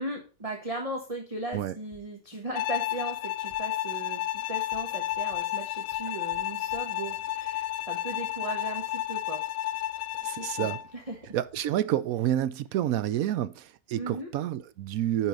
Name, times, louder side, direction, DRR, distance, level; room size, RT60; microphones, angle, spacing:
voice 1, 0.0-9.4 10.4-11.3 14.0-14.3, right 2 dB, 20° right, 1.2 m, -37 dB
sound 1, 1.5-1.6 1.9-2.0 2.3-2.8 3.1-3.2 3.5-3.6 3.9-4.4 4.7-6.8 7.1-7.6, right 1 dB, ahead, 1.7 m, -57 dB
Bowed string instrument, 2.6-10.9, left 14 dB, 85° left, 1.2 m, -32 dB
voice 2, 10.2-10.8 11.3-15.3, right 12 dB, 70° right, 0.9 m, -29 dB
10.0 x 4.7 x 5.2 m
omnidirectional pair, 1.8 m